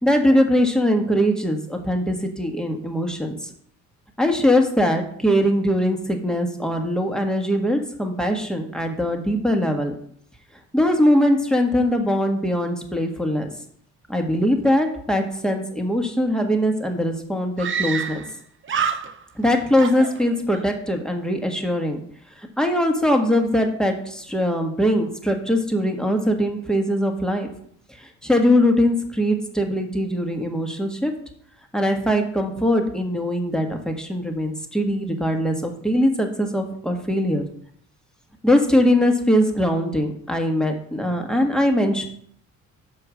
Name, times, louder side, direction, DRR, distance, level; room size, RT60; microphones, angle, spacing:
voice 1, 0.0-3.5 4.2-9.9 10.7-13.5 14.1-18.2 19.3-22.0 22.4-27.5 28.0-31.1 31.7-37.4 38.4-42.1, equal, ahead, 3 dB, 1.6 m, -21 dB
Screaming, 16.5-16.6 16.8-16.9 17.6-18.4 18.6-19.4 19.8-20.7, right 7 dB, 40° right, 0.8 m, -27 dB
6.7 x 5.3 x 6.3 m, 0.64 s
cardioid pair, 90°, 30 cm